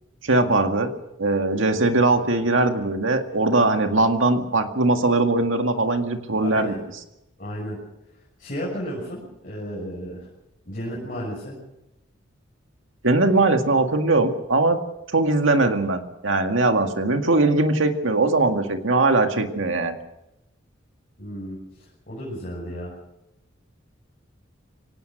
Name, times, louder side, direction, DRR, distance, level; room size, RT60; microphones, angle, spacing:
voice 1, 0.2-0.9 1.2-6.7 13.0-14.8 15.1-20.0, right 2 dB, 80° right, 6 dB, 2.0 m, -20 dB
voice 2, 6.4-6.8 7.4-7.8 8.4-10.3 10.6-11.5 21.2-22.9, equal, 45° left, -4 dB, 6.9 m, -33 dB
23.5 x 18.0 x 6.6 m, 0.89 s
head